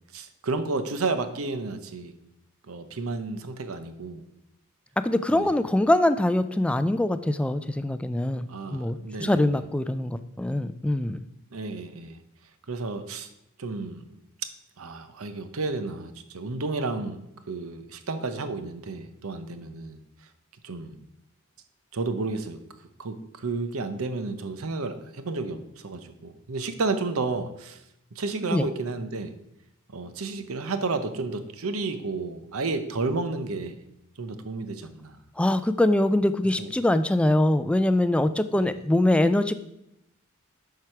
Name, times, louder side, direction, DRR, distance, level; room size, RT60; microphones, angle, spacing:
voice 1, 0.1-2.1 2.7-4.2 5.3-5.5 8.5-9.4 11.5-12.2 12.7-13.3 13.6-14.0 14.8-17.2 17.5-20.0 20.6-21.0 21.9-22.6 23.0-27.8 28.1-29.3 29.9-33.8 34.2-35.2 36.6-36.7 38.5-38.7, right 3 dB, 80° right, 10 dB, 0.8 m, -31 dB
voice 2, 5.0-11.2 28.5-28.7 35.4-39.5, left 1 dB, 5° left, 11 dB, 0.3 m, -23 dB
7.7 x 4.8 x 5.8 m, 0.83 s
head